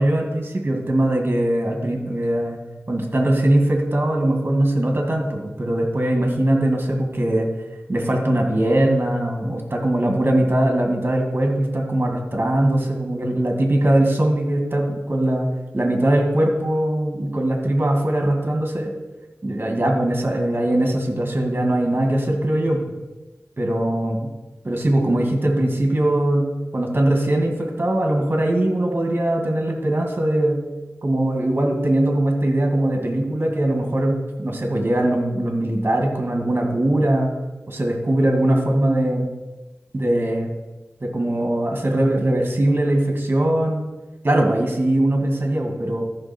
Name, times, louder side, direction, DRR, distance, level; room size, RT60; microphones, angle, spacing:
voice 1, 0.0-2.6 2.9-7.5 7.9-18.9 19.4-22.8 23.6-24.2 24.6-26.5 26.7-30.6 31.0-37.3 37.7-39.3 39.9-40.5 41.0-43.8 44.2-46.0, right 1 dB, 45° right, 2 dB, 2.3 m, -21 dB
13.5 x 6.1 x 4.6 m, 1.1 s
wide cardioid pair, 60°, 5 cm